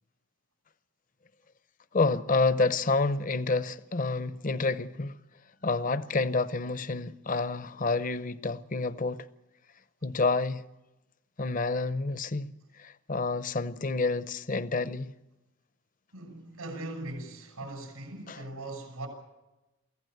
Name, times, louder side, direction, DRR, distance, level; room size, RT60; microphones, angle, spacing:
voice 1, 1.9-5.1 5.6-9.3 10.0-10.6 11.4-12.5 12.8-15.1 18.3-18.4, left 3 dB, 35° left, 0.7 m, -28 dB
voice 2, 16.1-19.1, right 2 dB, 85° right, 6.5 m, -40 dB
24.0 x 15.5 x 8.0 m
head